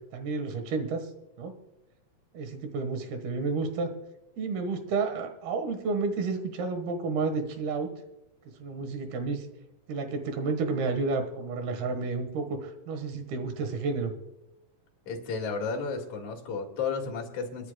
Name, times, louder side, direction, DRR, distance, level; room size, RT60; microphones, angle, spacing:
voice 1, 0.1-1.1 1.4-1.5 2.3-3.9 4.4-7.9 8.6-9.5 9.9-14.1, right 4 dB, 80° right, 7 dB, 3.4 m, -31 dB
voice 2, 15.1-17.7, left 5 dB, 55° left, 0 dB, 3.0 m, -33 dB
30.0 x 10.0 x 2.2 m, 0.93 s
omnidirectional pair, 4.3 m